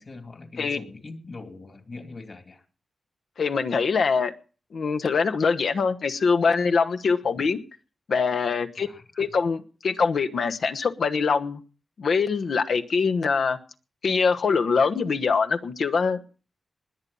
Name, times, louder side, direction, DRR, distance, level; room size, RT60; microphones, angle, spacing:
voice 1, 0.0-2.6 8.8-9.3, left 3 dB, 45° left, 6 dB, 2.6 m, -42 dB
voice 2, 3.4-4.3 4.7-7.6 8.1-8.9 9.2-11.6 12.0-13.6 14.0-16.3, left 5 dB, 75° left, 7 dB, 1.1 m, -23 dB
20.5 x 8.6 x 5.4 m, 0.38 s
wide cardioid pair, 140°, 0 cm